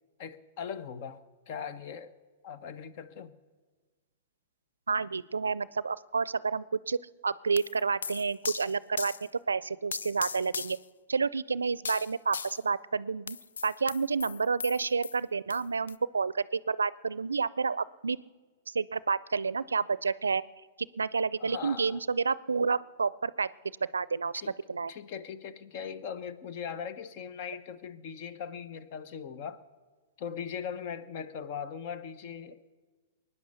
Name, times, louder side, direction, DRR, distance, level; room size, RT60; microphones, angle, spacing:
voice 1, 0.2-2.1 2.4-3.3 21.4-22.0 24.3-24.5 24.9-29.6 30.2-32.7, left 7 dB, 50° left, 1.0 m, -40 dB
voice 2, 4.9-10.8 11.1-13.4 13.6-18.2 18.7-20.4 20.8-23.5 23.9-24.3 24.7-24.9, right 5 dB, 90° right, 0.4 m, -30 dB
sound 1, 7.6-9.3 9.9-10.8 11.8-12.6 13.3-15.2 15.5-15.6 15.9-16.0, left 6 dB, 80° left, 0.4 m, -38 dB
21.5 x 9.8 x 6.8 m
hypercardioid pair, 115°, 0 cm